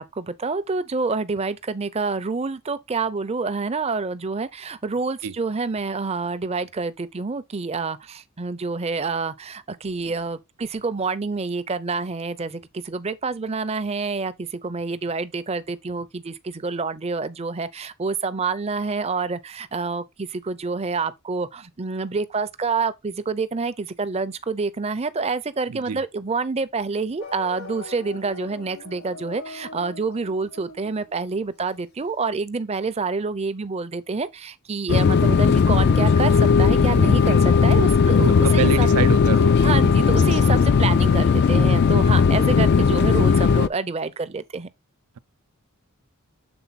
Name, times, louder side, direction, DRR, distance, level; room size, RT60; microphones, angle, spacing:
voice 1, 0.0-38.9 39.6-44.7, right 4 dB, 30° right, 0.5 m, -27 dB
voice 2, 25.7-26.0 37.3-37.4 38.3-39.6, right 7 dB, 85° right, 0.5 m, -27 dB
sound 1, 27.2-32.0, left 4 dB, 85° left, 1.7 m, -41 dB
sound 2, 34.9-43.7, left 5 dB, 50° left, 0.3 m, -17 dB
7.0 x 3.9 x 4.0 m
head